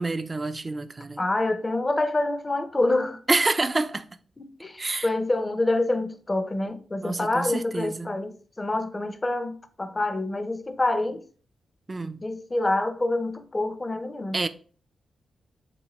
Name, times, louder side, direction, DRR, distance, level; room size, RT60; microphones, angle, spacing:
voice 1, 0.0-1.2 3.3-4.1 4.8-5.1 7.0-8.1 11.9-12.2 14.3-14.5, right 3 dB, 35° right, 0.3 m, -27 dB
voice 2, 1.2-3.2 4.4-11.2 12.2-14.4, left 2 dB, 30° left, 0.5 m, -27 dB
3.3 x 3.0 x 2.9 m
supercardioid pair, 50°, 0 cm